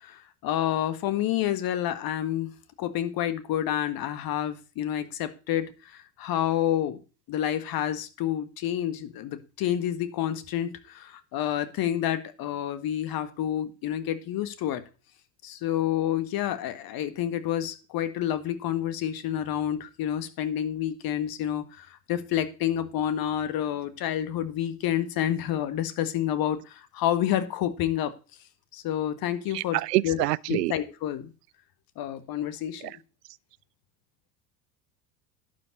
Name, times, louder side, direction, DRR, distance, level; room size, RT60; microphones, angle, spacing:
voice 1, 0.0-7.0 7.3-14.8 15.4-28.1 28.7-31.3 32.0-33.0, left 11 dB, 45° left, 1.8 m, -29 dB
voice 2, 29.5-30.7, right 18 dB, 70° right, 0.6 m, -26 dB
11.5 x 5.3 x 8.4 m
figure-of-eight pair, 75°, 50 cm